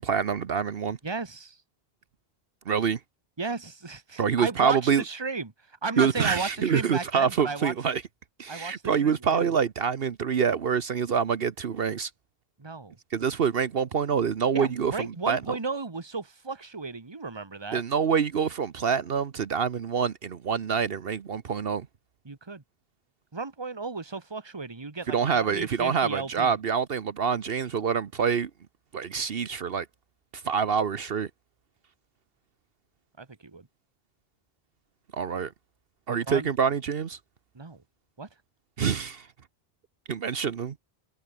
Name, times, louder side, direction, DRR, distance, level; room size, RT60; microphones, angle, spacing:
voice 1, 0.0-1.0 2.7-3.0 4.2-5.0 6.0-8.0 8.4-12.1 13.1-15.4 17.7-21.9 25.1-28.5 28.9-29.9 30.4-31.3 35.1-35.5 36.1-37.2 38.8-39.3 40.1-40.7, right 6 dB, 70° right, 1.1 m, -26 dB
voice 2, 1.0-1.6 3.4-7.8 8.5-9.6 12.6-13.0 14.5-17.8 22.2-22.6 23.3-26.6 33.2-33.7 36.1-36.5 37.5-37.8 38.2-38.3, right 4 dB, 25° right, 1.4 m, -34 dB
omnidirectional pair, 1.0 m